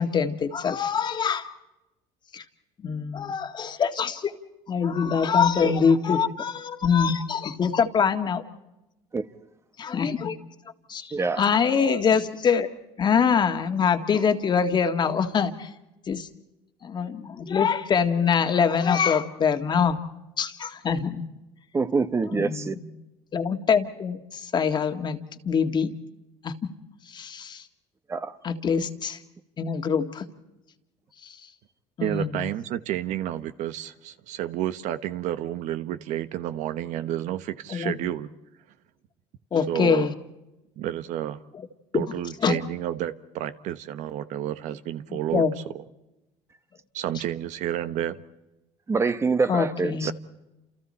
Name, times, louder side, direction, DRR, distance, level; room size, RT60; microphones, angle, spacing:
voice 1, 0.0-1.5 2.3-2.4 2.8-4.3 4.7-8.4 9.8-10.4 10.9-12.7 13.0-15.7 16.1-16.3 16.8-20.0 20.4-21.2 22.3-22.9 23.3-25.9 26.4-26.7 27.1-27.6 28.4-29.2 29.6-30.2 31.2-31.3 32.0-32.5 37.7-38.0 39.5-40.1 41.9-42.0 42.4-42.6 45.3-45.5 49.5-50.1, left 6 dB, 35° left, 7 dB, 1.8 m, -24 dB
voice 2, 11.1-11.4 21.7-22.8 28.1-28.3 48.9-50.1, right 4 dB, 20° right, 11 dB, 1.2 m, -25 dB
voice 3, 32.0-38.3 39.7-40.1 40.8-41.4 41.9-45.5 45.7-45.8 46.9-48.2 50.0-50.1, right 12 dB, 70° right, 12 dB, 1.2 m, -30 dB
30.0 x 28.5 x 4.4 m, 0.98 s
cardioid pair, 125°, 13 cm